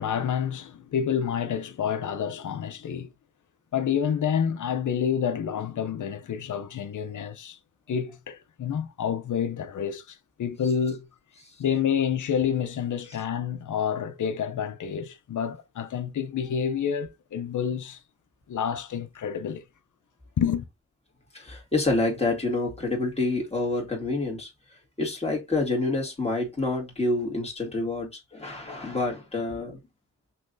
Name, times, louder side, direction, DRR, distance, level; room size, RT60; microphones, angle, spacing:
voice 1, 0.0-3.1 3.7-7.6 7.9-11.1 11.6-18.0 18.5-19.6 20.4-20.7, left 8 dB, 70° left, 0.7 m, -28 dB
voice 2, 21.3-24.5 25.0-29.8, left 2 dB, 20° left, 2.2 m, -27 dB
5.7 x 3.1 x 2.7 m
cardioid pair, 55°, 32 cm